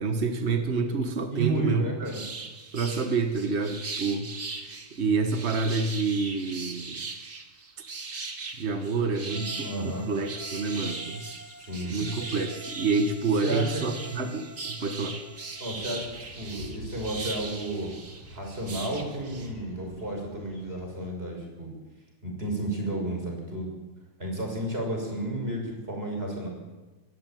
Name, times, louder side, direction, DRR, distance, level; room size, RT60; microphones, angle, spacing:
voice 1, 0.0-2.1 2.7-4.3 4.6-7.0 8.6-11.2 11.8-15.2, right 4 dB, 50° right, 7 dB, 0.7 m, -28 dB
voice 2, 1.3-2.2 9.2-10.1 11.6-12.0 13.4-13.8 15.6-17.9 18.3-21.7 22.2-23.7 24.2-26.5, right 1 dB, 20° right, 1 dB, 6.3 m, -32 dB
sound 1, 2.0-19.5, right 3 dB, 35° right, 2.4 m, -39 dB
sound 2, 9.3-16.0, right 1 dB, 5° left, 1.5 m, -47 dB
sound 3, 15.8-21.1, equal, 50° left, 4.9 m, -46 dB
22.5 x 15.5 x 9.2 m, 1.2 s
omnidirectional pair, 3.3 m